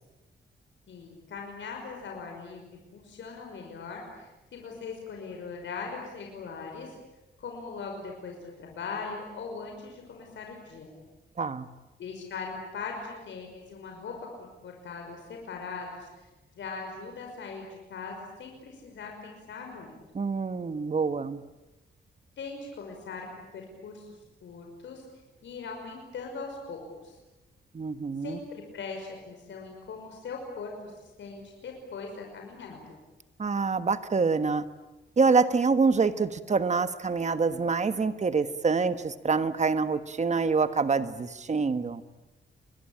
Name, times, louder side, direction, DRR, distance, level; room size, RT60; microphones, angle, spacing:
voice 1, 0.9-7.0 7.4-10.9 12.0-16.1 16.6-19.9 22.4-24.1 24.4-25.1 25.4-27.2 28.2-30.7 31.0-33.0, left 4 dB, 80° left, 1 dB, 5.7 m, -40 dB
voice 2, 11.4-11.7 20.1-21.4 27.7-28.4 33.4-34.6 35.2-42.0, right 4 dB, 40° right, 11 dB, 1.4 m, -26 dB
29.5 x 22.0 x 8.8 m, 1.1 s
cardioid pair, 105°, 19 cm